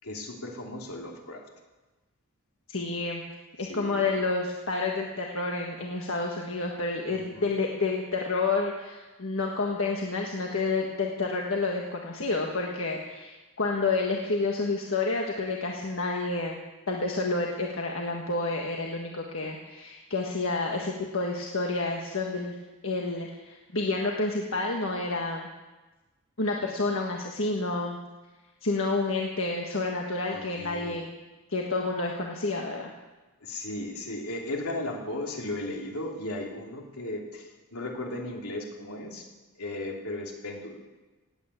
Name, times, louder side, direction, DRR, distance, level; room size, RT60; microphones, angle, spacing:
voice 1, 0.0-1.4 3.6-4.1 7.1-7.5 30.3-31.0 33.4-39.2 39.6-40.8, left 1 dB, 80° left, 0 dB, 3.2 m, -36 dB
voice 2, 2.7-3.2 3.6-16.6 16.9-22.5 22.8-25.5 26.4-28.0 28.6-31.1 31.5-32.9, left 3 dB, 65° left, 0 dB, 1.6 m, -29 dB
18.0 x 9.2 x 8.5 m, 1.2 s
head